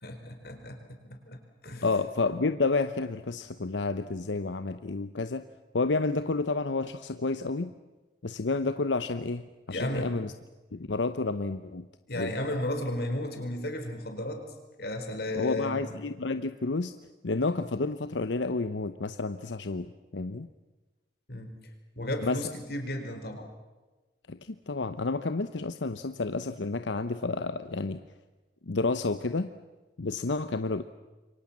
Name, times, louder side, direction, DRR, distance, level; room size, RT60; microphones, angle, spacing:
voice 1, 0.0-1.9 9.7-10.2 12.1-14.4 14.8-15.8 21.3-21.5 22.0-23.5, left 1 dB, 60° left, 5 dB, 4.4 m, -34 dB
voice 2, 1.8-5.4 5.7-7.7 8.2-10.3 10.7-11.8 12.2-12.3 15.3-16.9 17.2-19.9 20.1-20.5 22.2-22.4 24.3-28.0 28.7-29.5 30.0-30.8, left 3 dB, 90° left, 11 dB, 0.8 m, -30 dB
27.5 x 23.5 x 7.3 m, 1.2 s
head